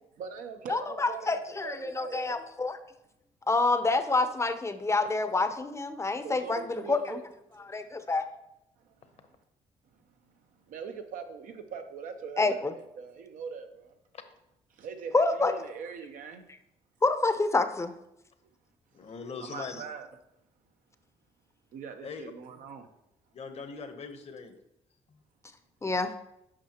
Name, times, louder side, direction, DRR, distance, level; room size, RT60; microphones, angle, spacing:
voice 1, 0.2-2.4 6.2-7.2 7.5-7.9 8.8-9.3 10.2-10.3 10.7-14.0 14.7-16.5 18.4-18.5 19.4-20.1 21.7-22.9, right 6 dB, 80° right, 6 dB, 0.7 m, -42 dB
voice 2, 0.7-2.8 3.5-7.2 7.7-8.3 12.4-12.7 15.1-15.5 17.0-17.9 25.8-26.1, left 3 dB, 20° left, 9 dB, 0.6 m, -27 dB
voice 3, 18.9-19.8 22.0-22.2 23.3-24.6 25.1-25.2, left 5 dB, 50° left, 8 dB, 0.9 m, -41 dB
8.7 x 5.5 x 2.9 m, 0.83 s
cardioid pair, 80°, 14 cm